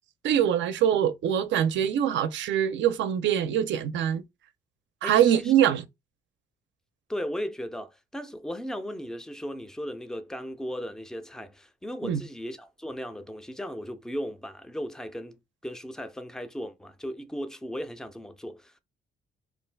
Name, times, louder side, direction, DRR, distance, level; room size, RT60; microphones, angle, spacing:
voice 1, 0.2-4.2 5.0-5.8 12.0-12.2, right 10 dB, 65° right, 0.4 m, -23 dB
voice 2, 5.0-5.5 7.1-18.8, equal, 5° left, 0.4 m, -36 dB
2.5 x 2.3 x 3.3 m
cardioid pair, 90°, 20 cm